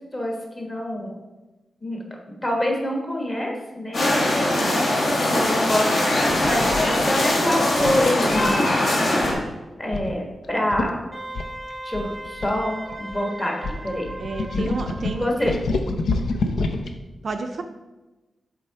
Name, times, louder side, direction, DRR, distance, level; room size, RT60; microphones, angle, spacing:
voice 1, 0.1-1.2 1.8-2.0 2.4-4.1 5.3-8.7 9.8-11.0 11.8-13.5 13.8-14.0 15.2-15.5, left 1 dB, 20° left, 0 dB, 1.2 m, -26 dB
sound 1, 3.9-9.3, left 1 dB, 55° left, 1.5 m, -21 dB
voice 2, 4.4-4.8 14.2-15.5 17.2-17.6, right 3 dB, 50° right, 5 dB, 0.4 m, -31 dB
sound 2, 6.3-6.8 7.8-8.7 9.2-9.5 9.9-10.1 10.4-10.5 10.7-10.9 11.3-13.2 13.6-16.9, left 3 dB, 80° left, 0.6 m, -27 dB
Wind instrument woodwind instrument, 11.1-15.3, right 2 dB, 5° right, 0.8 m, -37 dB
7.5 x 3.7 x 4.6 m, 1.1 s
wide cardioid pair, 170°, 0 cm